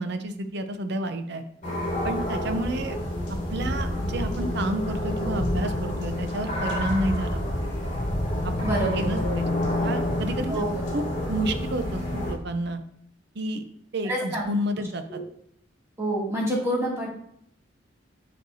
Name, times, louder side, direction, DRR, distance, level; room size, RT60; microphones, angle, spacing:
voice 1, 0.0-1.4 2.0-3.0 3.3-7.5 8.4-8.5 8.9-9.5 9.8-10.6 10.9-11.0 11.3-12.8 13.3-13.7 13.9-15.2, right 1 dB, 60° right, 8 dB, 0.6 m, -30 dB
sound 1, 1.6-12.3, left 1 dB, 40° left, 2.4 m, -28 dB
voice 2, 8.6-9.3 10.5-10.9 14.0-14.4 15.1-15.2 16.0-17.1, right 1 dB, 15° right, -6 dB, 2.5 m, -27 dB
6.5 x 6.4 x 2.7 m, 0.68 s
head